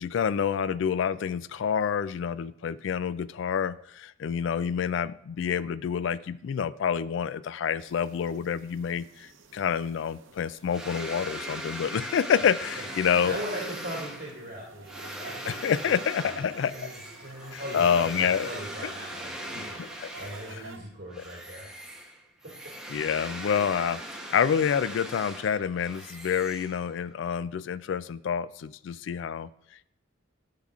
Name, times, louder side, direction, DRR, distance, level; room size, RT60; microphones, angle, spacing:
voice 1, 0.0-13.4 15.4-16.9 17.5-18.5 18.8-18.9 19.8-20.1 20.5-20.6 22.9-24.0 24.3-29.5, left 7 dB, 65° left, 17 dB, 0.3 m, -28 dB
sound 1, 7.8-20.8, right 3 dB, 75° right, 0.8 m, -51 dB
sound 2, 10.7-20.8 21.1-27.1, right 1 dB, 5° right, 0.8 m, -40 dB
voice 2, 13.2-15.5 15.8-15.9 16.2-16.4 16.7-21.7 22.0-22.1, equal, 50° right, -4 dB, 1.9 m, -39 dB
12.0 x 5.8 x 2.4 m, 0.76 s
head